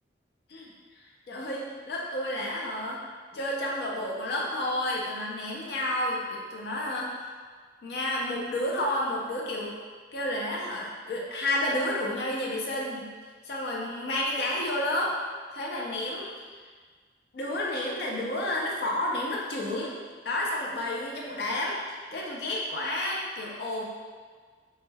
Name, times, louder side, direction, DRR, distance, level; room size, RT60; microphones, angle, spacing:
voice 1, 1.3-3.0 3.3-7.1 7.8-9.8 10.1-13.1 13.4-15.1 15.5-16.3 17.3-19.9 20.2-23.8, left 1 dB, 65° left, -3 dB, 0.4 m, -30 dB
2.2 x 2.1 x 3.2 m, 1.5 s
head